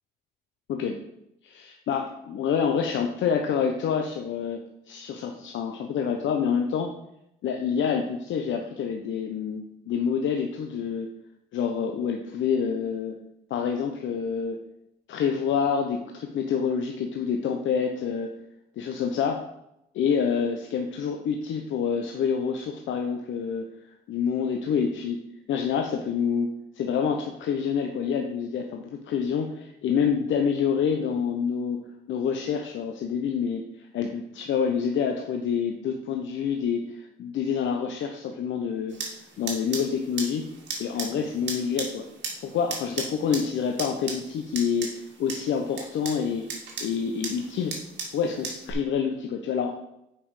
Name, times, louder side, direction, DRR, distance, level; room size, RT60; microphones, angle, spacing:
voice 1, 0.7-1.0 1.4-4.6 4.9-6.9 7.4-11.1 11.5-13.2 13.5-14.6 15.1-18.3 18.8-19.4 19.9-23.7 24.1-25.2 25.5-26.5 26.8-31.8 32.1-33.7 33.9-40.5 40.8-42.0 42.4-46.5 46.8-47.8 48.1-49.7, left 7 dB, 75° left, 3 dB, 0.9 m, -27 dB
sound 1, 38.9-48.7, right 4 dB, 60° right, 2.3 m, -37 dB
7.5 x 5.6 x 4.9 m, 0.81 s
cardioid pair, 90°, 20 cm